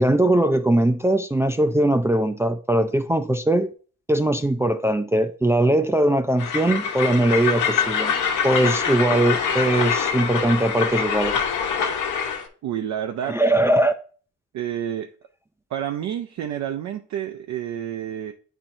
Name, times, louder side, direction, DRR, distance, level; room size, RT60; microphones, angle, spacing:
voice 1, 0.0-3.7 4.1-8.1 8.4-11.4 13.2-13.9, right 1 dB, 10° right, 0.3 m, -20 dB
Train, 6.4-12.5, left 7 dB, 80° left, 1.1 m, -24 dB
voice 2, 12.6-13.4 14.5-15.1 15.7-18.3, right 10 dB, 65° right, 0.5 m, -29 dB
8.6 x 4.4 x 2.6 m
cardioid pair, 90°, 30 cm